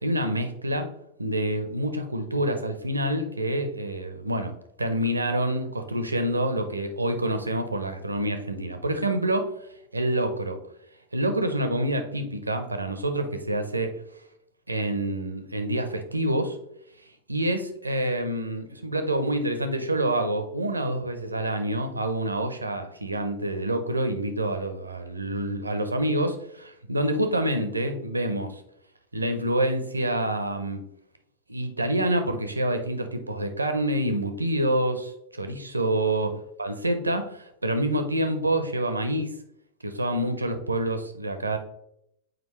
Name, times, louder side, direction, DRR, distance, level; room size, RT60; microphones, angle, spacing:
voice 1, 0.0-0.9 1.2-9.5 9.9-10.6 11.1-14.0 14.7-16.6 17.3-28.6 29.1-30.8 31.5-36.3 36.6-39.3 39.8-41.6, right 1 dB, 80° right, 8 dB, 0.8 m, -27 dB
7.6 x 4.7 x 3.1 m, 0.76 s
figure-of-eight pair, 90°, 0 cm